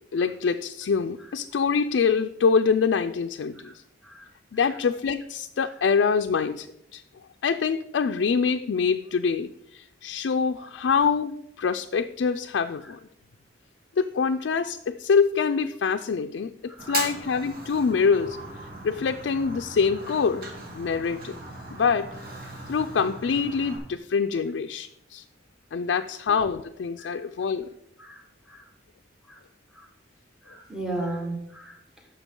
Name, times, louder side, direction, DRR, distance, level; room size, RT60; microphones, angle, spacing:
voice 1, 0.1-3.7 4.5-7.0 7.4-13.0 14.0-18.4 18.8-21.4 21.7-22.1 22.7-25.2 25.7-27.7, left 5 dB, 85° left, 7 dB, 0.4 m, -25 dB
voice 2, 16.7-17.1 27.0-27.2 28.0-28.6 29.3-29.4 29.7-29.9 30.5-31.8, right 2 dB, 5° right, 2 dB, 1.5 m, -36 dB
Fire, 16.8-23.8, right 2 dB, 55° right, 2.0 m, -38 dB
10.0 x 6.8 x 3.7 m, 0.78 s
head